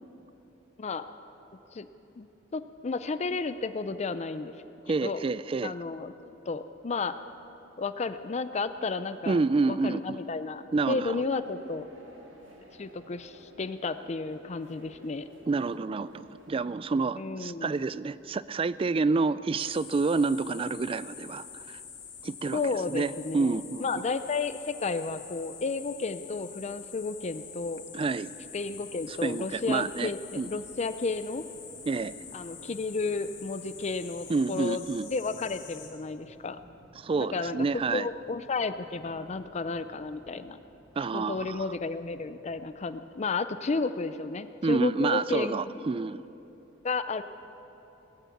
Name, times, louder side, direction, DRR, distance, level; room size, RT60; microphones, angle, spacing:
voice 1, 2.5-4.5 4.9-5.3 5.6-7.2 7.8-9.4 9.7-11.9 12.8-15.3 17.2-17.8 22.5-27.8 28.5-31.4 32.3-36.6 37.1-40.6 41.1-45.9 46.8-47.2, left 4 dB, 35° left, 12 dB, 0.5 m, -32 dB
voice 2, 4.9-5.7 9.3-10.2 10.7-11.2 15.5-21.8 22.2-22.6 22.9-23.8 27.9-28.3 29.2-30.1 30.4-30.5 31.9-32.1 34.3-35.1 37.0-38.1 41.0-41.6 44.6-46.2, right 4 dB, 30° right, 17 dB, 0.3 m, -28 dB
sound 1, 11.1-16.8, equal, 90° right, 2.2 m, -53 dB
sound 2, 19.6-35.9, left 7 dB, 85° left, 2.9 m, -46 dB
sound 3, 28.4-43.0, equal, 5° right, 2.6 m, -59 dB
18.5 x 9.4 x 8.4 m, 3.0 s
head